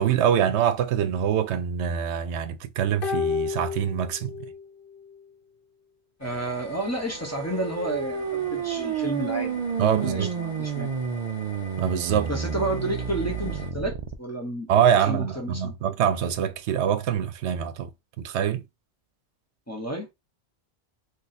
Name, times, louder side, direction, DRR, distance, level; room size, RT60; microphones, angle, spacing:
voice 1, 0.0-4.3 9.8-10.3 11.8-12.3 14.7-17.9 18.2-18.6, right 9 dB, 90° right, 0.9 m, -24 dB
sound 1, 3.0-4.7 4.9-5.0, left 6 dB, 65° left, 0.7 m, -30 dB
sound 2, 6.2-13.7, left 1 dB, 45° left, 1.2 m, -44 dB
voice 2, 6.2-9.6 10.0-10.9 12.3-14.7 15.0-15.7 19.7-20.1, right 1 dB, 20° left, 0.6 m, -31 dB
sound 3, 7.0-14.1, right 7 dB, 60° right, 0.4 m, -30 dB
2.7 x 2.4 x 4.0 m
omnidirectional pair, 1.1 m